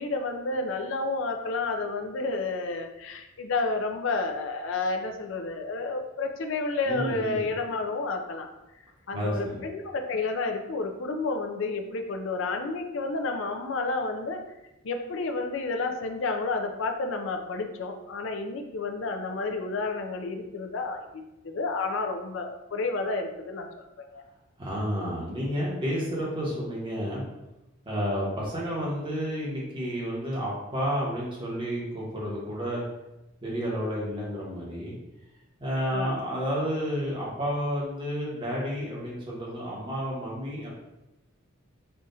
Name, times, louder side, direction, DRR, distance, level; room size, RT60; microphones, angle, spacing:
voice 1, 0.0-8.5 9.1-14.4 14.8-21.0 21.4-23.7 24.0-24.2 35.9-36.1, left 3 dB, 60° left, 4 dB, 0.4 m, -30 dB
voice 2, 6.9-7.5 9.1-9.6 24.6-27.2 27.8-32.8 33.4-34.9 35.6-40.7, equal, 25° right, -5 dB, 1.1 m, -31 dB
5.6 x 2.4 x 2.7 m, 0.95 s
head